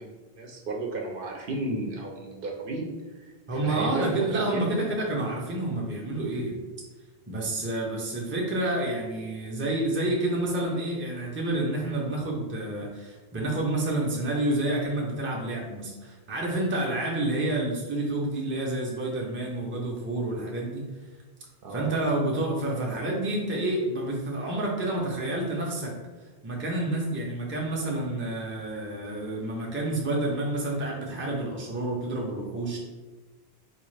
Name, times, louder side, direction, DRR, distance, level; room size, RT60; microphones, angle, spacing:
voice 1, 0.0-5.0 21.6-22.0, right 2 dB, 60° right, 0 dB, 0.7 m, -34 dB
voice 2, 3.5-6.6 7.3-20.8 21.7-25.9 26.4-32.8, right 2 dB, 15° right, -2 dB, 0.4 m, -29 dB
4.0 x 2.4 x 3.1 m, 1.2 s
omnidirectional pair, 1.1 m